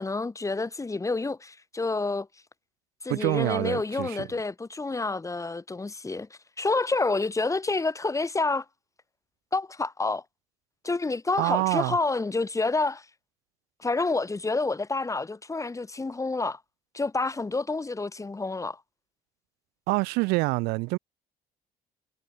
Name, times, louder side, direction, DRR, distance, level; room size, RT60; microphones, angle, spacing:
voice 1, 0.0-2.3 3.0-6.3 6.6-8.7 9.5-10.2 10.8-13.1 13.8-16.6 16.9-18.8, left 3 dB, 20° left, 1.8 m, -28 dB
voice 2, 3.1-4.3 11.4-12.0 19.9-21.0, right 25 dB, 80° right, 0.4 m, -26 dB
supercardioid pair, 75°, 16 cm